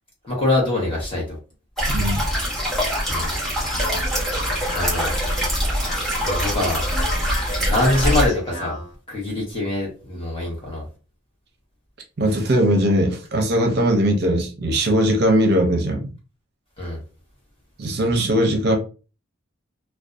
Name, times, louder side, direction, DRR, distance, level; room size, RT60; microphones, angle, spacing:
voice 1, 0.2-1.4 3.1-3.4 4.7-5.1 6.2-6.9 7.7-8.8 9.1-10.9 16.8-17.0, left 2 dB, 25° left, 1.0 m, -24 dB
sound 1, 1.8-8.3, equal, ahead, 0.8 m, -23 dB
voice 2, 1.9-2.2 12.2-16.1 17.8-18.8, right 1 dB, 50° right, 0.5 m, -19 dB
Speech, 3.5-8.9, left 1 dB, 60° left, 1.3 m, -35 dB
2.5 x 2.2 x 2.4 m
head